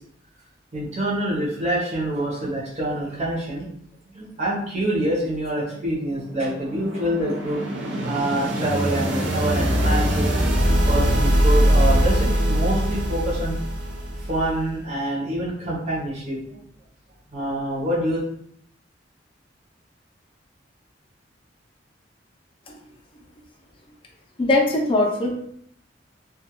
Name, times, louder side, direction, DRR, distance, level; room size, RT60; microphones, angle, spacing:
voice 1, 0.7-3.6 4.1-7.6 8.0-10.4 10.9-13.6 14.3-16.6 17.3-18.2, right 1 dB, 40° right, -6 dB, 0.7 m, -26 dB
sound 1, 5.9-14.7, equal, 75° right, 0.5 m, -22 dB
voice 2, 24.4-25.4, left 2 dB, 30° left, 0 dB, 0.5 m, -21 dB
2.3 x 2.2 x 2.9 m, 0.67 s
head